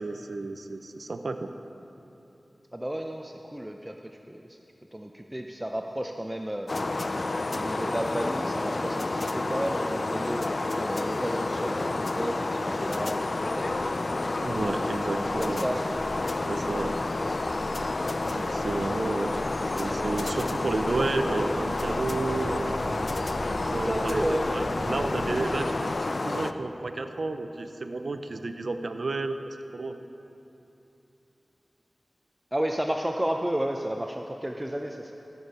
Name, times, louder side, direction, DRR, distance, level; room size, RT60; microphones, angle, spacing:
voice 1, 0.0-1.5 14.4-15.7 16.5-16.9 18.3-22.7 23.7-24.2 24.5-30.0, right 3 dB, 70° right, 8 dB, 0.5 m, -31 dB
voice 2, 2.7-4.0 4.3-4.6 4.9-6.7 7.5-13.7 15.4-15.8 23.7-24.5 32.5-35.1, right 1 dB, 15° right, 3 dB, 0.5 m, -32 dB
sound 1, 6.7-26.5, left 2 dB, 55° left, 0.3 m, -29 dB
sound 2, 13.4-25.4, right 1 dB, 35° right, 1.8 m, -41 dB
14.0 x 6.8 x 4.2 m, 2.9 s
cardioid pair, 45°, 0 cm